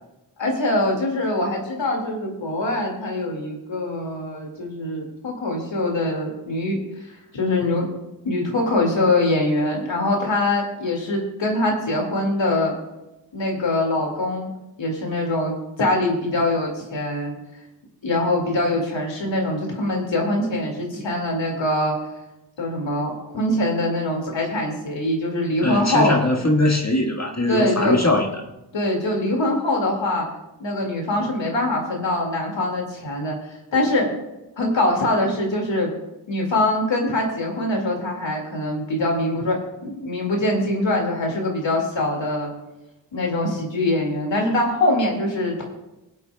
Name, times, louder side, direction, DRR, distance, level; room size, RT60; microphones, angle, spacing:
voice 1, 0.4-6.8 7.3-7.9 8.2-12.7 13.3-14.5 14.8-17.3 18.0-22.0 22.6-26.2 27.5-28.0 28.7-30.3 30.6-33.4 33.7-34.1 34.6-35.9 36.3-42.5 43.1-45.6, left 1 dB, 90° left, 0 dB, 2.2 m, -23 dB
voice 2, 25.6-28.3, left 2 dB, 35° left, 1 dB, 1.6 m, -21 dB
20.0 x 8.4 x 2.3 m, 0.97 s
cardioid pair, 50°, 44 cm